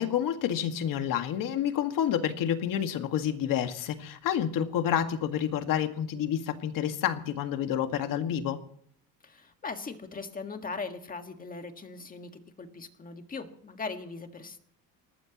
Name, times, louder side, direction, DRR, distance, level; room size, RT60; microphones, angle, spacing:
voice 1, 0.0-8.6, left 9 dB, 60° left, 7 dB, 1.8 m, -29 dB
voice 2, 9.2-14.6, left 4 dB, 20° left, 6 dB, 1.7 m, -39 dB
24.0 x 18.5 x 3.0 m, 0.62 s
cardioid pair, 140°, 37 cm